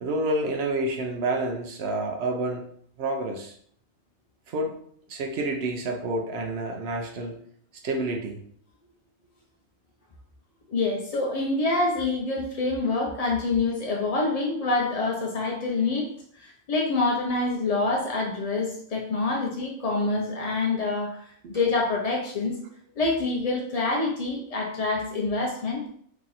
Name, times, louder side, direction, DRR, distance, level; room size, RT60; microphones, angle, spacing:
voice 1, 0.0-2.6 3.0-3.5 4.5-4.7 5.1-7.3 7.8-8.4 21.4-21.6, right 2 dB, 60° right, 3 dB, 0.7 m, -28 dB
voice 2, 10.7-16.1 16.3-22.6 23.0-25.9, left 3 dB, 65° left, -1 dB, 0.3 m, -26 dB
2.9 x 2.9 x 3.8 m, 0.63 s
omnidirectional pair, 1.4 m